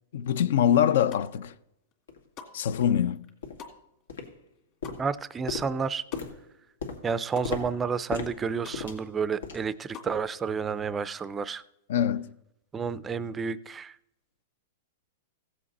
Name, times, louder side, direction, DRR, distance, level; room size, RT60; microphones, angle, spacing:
voice 1, 0.1-1.5 2.5-3.2 11.9-12.3, left 9 dB, 65° left, 0.5 m, -24 dB
sound 1, 0.9-1.5 1.9-6.7 6.9-7.5 7.9-8.0 8.2-8.8 9.2-10.2, left 6 dB, 35° left, 2.1 m, -48 dB
sound 2, 1.4-1.5 2.1-2.2 2.7-2.9 3.4-3.7 4.1-4.5 4.8-9.8 10.1-10.3 10.7-10.9 11.4-11.5, left 5 dB, 90° left, 2.2 m, -38 dB
voice 2, 5.0-6.0 7.0-11.6 12.7-13.9, right 5 dB, 15° right, 0.4 m, -30 dB
16.0 x 7.6 x 4.1 m
hypercardioid pair, 155°, 0 cm